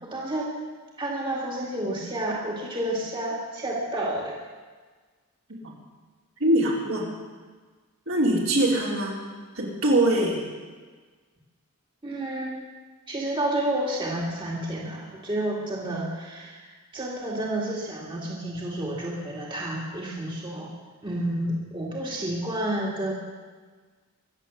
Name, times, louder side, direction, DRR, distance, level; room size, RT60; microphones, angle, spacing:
voice 1, 0.0-0.5 1.0-4.4 12.0-12.6 13.1-20.7 21.0-23.1, right 1 dB, 20° right, -4 dB, 2.2 m, -30 dB
voice 2, 6.4-7.1 8.1-9.2 9.5-10.4, right 1 dB, 65° right, -4 dB, 4.0 m, -23 dB
23.5 x 8.2 x 7.1 m, 1.4 s
head